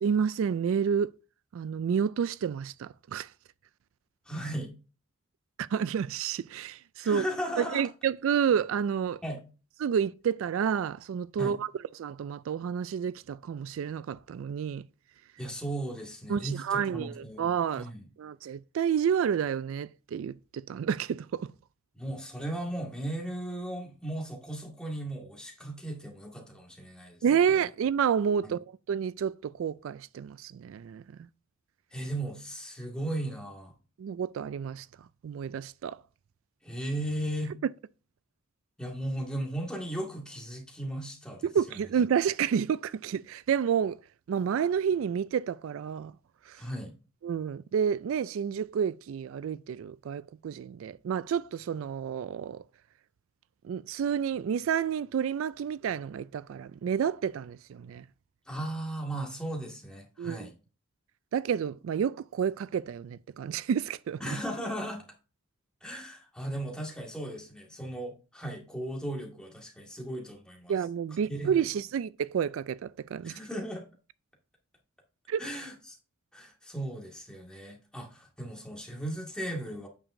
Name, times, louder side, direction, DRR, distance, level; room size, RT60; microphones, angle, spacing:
voice 1, 0.0-1.1 1.5-3.3 5.7-7.3 7.6-9.2 9.8-14.8 16.3-17.9 18.2-21.5 27.2-28.6 28.9-31.0 34.0-34.9 35.2-36.0 41.4-44.0 44.3-46.1 46.5-46.6 47.2-52.6 53.6-58.0 60.2-60.5 61.3-64.2 70.7-73.4 75.3-75.4, right 7 dB, 70° right, 0.3 m, -30 dB
voice 2, 4.3-4.7 7.0-7.9 9.2-9.4 11.4-11.6 15.4-17.4 17.7-18.0 21.9-27.2 28.4-28.5 31.9-33.7 36.6-37.6 38.8-41.5 46.6-46.9 58.5-60.5 64.2-65.0 65.8-70.7 71.3-71.6 73.2-73.8 75.4-76.0 76.3-79.9, right 1 dB, 5° left, 2.0 m, -36 dB
8.8 x 7.0 x 2.7 m
head